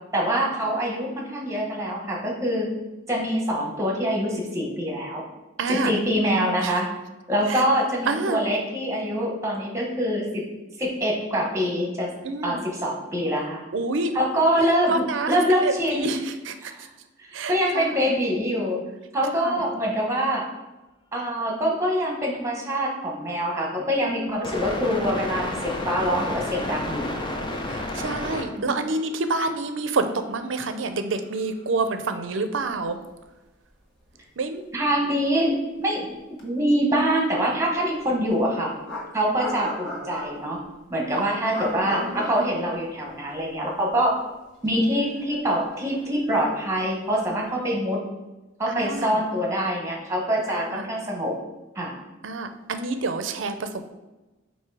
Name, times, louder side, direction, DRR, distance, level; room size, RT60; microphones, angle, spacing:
voice 1, 0.1-2.7 3.1-5.2 5.7-6.9 7.3-10.4 10.8-12.1 12.4-13.6 14.1-16.2 16.6-16.9 17.2-18.8 19.1-20.4 21.1-27.1 34.7-36.1 36.4-38.7 39.1-40.6 40.9-44.1 44.6-48.0 48.6-51.3 51.7-51.9, equal, 15° right, -1 dB, 1.2 m, -25 dB
voice 2, 5.6-6.0 6.6-6.8 7.5-7.6 8.1-8.4 12.2-12.6 13.7-14.1 14.6-15.4 15.6-16.7 17.3-18.0 19.4-19.6 27.7-33.0 34.4-34.7 41.2-42.4 48.7-49.2 50.6-50.9 52.2-53.9, right 3 dB, 65° right, 8 dB, 0.5 m, -28 dB
sound 1, 24.4-28.4 28.7-28.8 30.1-30.2 30.6-30.7 31.3-31.4, left 1 dB, 25° left, 0.6 m, -31 dB
sound 2, 33.7-33.8 34.0-34.2 36.4-36.5 38.2-38.3 38.9-40.6 41.5-43.5 43.8-43.9 44.7-47.0, left 1 dB, 55° left, 1.4 m, -36 dB
7.6 x 2.7 x 4.7 m, 1.1 s
head